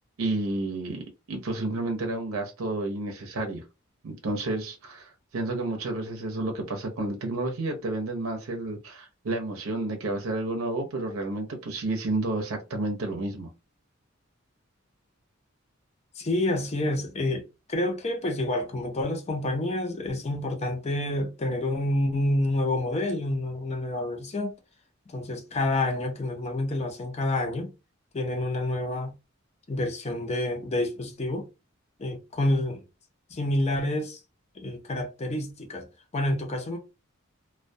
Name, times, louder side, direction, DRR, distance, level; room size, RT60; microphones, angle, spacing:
voice 1, 0.2-1.0 1.3-3.6 4.0-13.5, right 2 dB, 85° right, 0.6 m, -30 dB
voice 2, 16.2-24.5 25.1-27.7 28.1-29.1 29.7-31.5 32.0-32.8 33.3-34.2 34.6-35.9 36.1-36.8, left 1 dB, 30° left, 0.5 m, -28 dB
2.2 x 2.2 x 2.5 m
head